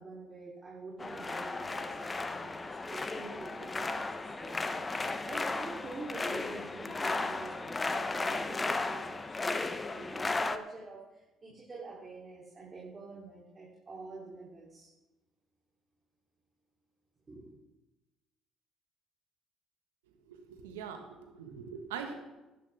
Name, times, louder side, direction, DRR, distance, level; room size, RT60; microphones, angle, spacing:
voice 1, 0.0-14.9 17.3-17.5, right 3 dB, 35° right, -5 dB, 3.6 m, -47 dB
sound 1, 1.0-10.6, left 3 dB, 25° left, 0.9 m, -35 dB
voice 2, 20.2-22.1, right 7 dB, 85° right, 5 dB, 1.6 m, -42 dB
16.0 x 11.0 x 3.7 m, 1.1 s
hypercardioid pair, 60°, 0 cm